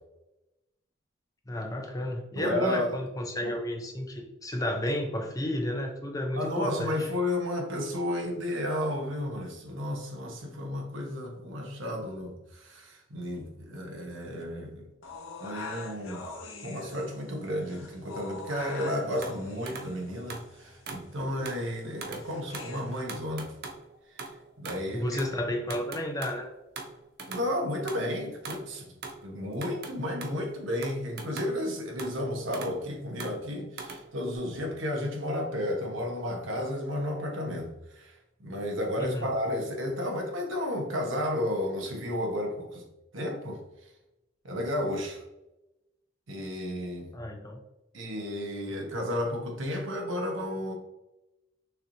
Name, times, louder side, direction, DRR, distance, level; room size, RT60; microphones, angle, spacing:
voice 1, 1.5-7.1 25.0-26.5 39.0-39.3 47.1-47.6, left 1 dB, 15° left, 3 dB, 0.5 m, -32 dB
voice 2, 2.4-2.9 3.4-3.5 6.4-14.9 15.4-16.3 16.6-23.5 24.1-24.2 24.6-25.2 27.3-28.9 29.2-42.8 43.1-43.6 44.4-45.2 46.3-47.1 47.9-50.7, left 1 dB, 80° right, 1 dB, 1.0 m, -32 dB
sound 1, 15.0-23.0, left 3 dB, 85° left, 0.7 m, -44 dB
sound 2, 18.7-18.9 19.2-20.0 20.3-21.1 21.5-21.7 22.0-22.3 22.5-22.8 23.1-24.9 25.2-25.4 25.7-27.5 27.9-29.2 29.5-30.4 30.8-31.7 32.0-32.8 33.2-34.4, right 4 dB, 50° right, 0.6 m, -41 dB
6.3 x 3.1 x 2.6 m, 0.95 s
head